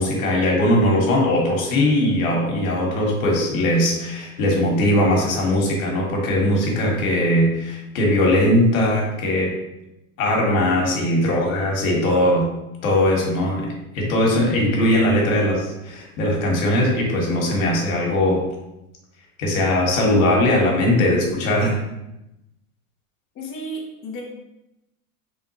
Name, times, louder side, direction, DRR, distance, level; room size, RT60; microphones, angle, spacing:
voice 1, 0.0-9.5 10.2-12.5 12.8-18.5 19.4-21.8, left 1 dB, 80° left, -1 dB, 1.5 m, -20 dB
voice 2, 23.4-24.2, right 1 dB, 30° left, -2 dB, 0.8 m, -32 dB
4.3 x 3.5 x 2.9 m, 0.91 s
supercardioid pair, 130°, 41 cm